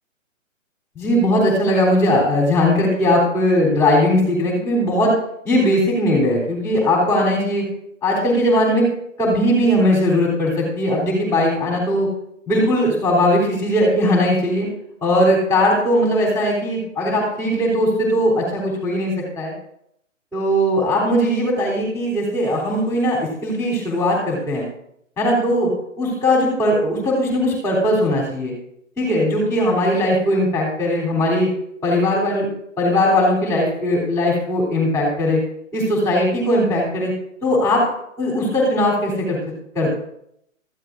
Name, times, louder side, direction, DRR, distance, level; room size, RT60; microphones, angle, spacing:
voice 1, 0.9-5.1 5.4-7.7 8.0-8.9 9.2-12.1 12.5-14.7 15.0-19.5 20.3-24.7 25.2-25.7 26.0-28.5 29.0-31.5 31.8-32.5 32.8-35.4 35.7-37.1 37.4-37.8 38.2-39.9, left 1 dB, 5° left, -2 dB, 3.3 m, -19 dB
18.0 x 14.0 x 2.6 m, 0.73 s
hypercardioid pair, 145°, 40 cm